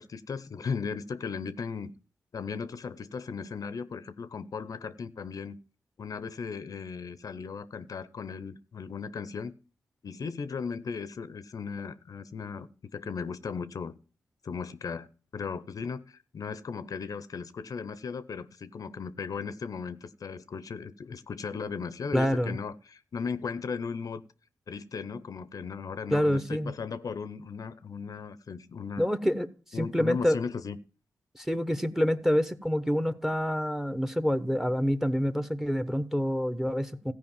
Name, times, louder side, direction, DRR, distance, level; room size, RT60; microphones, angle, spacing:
voice 1, 0.0-1.9 2.3-5.6 6.0-9.5 10.0-14.0 14.4-15.1 15.3-24.2 24.7-29.1 29.7-30.8, left 5 dB, 60° left, 0.6 m, -37 dB
voice 2, 22.1-22.6 26.1-26.7 29.0-30.4 31.3-37.1, equal, 5° right, 0.9 m, -27 dB
14.5 x 5.0 x 7.3 m
cardioid pair, 70°, 7 cm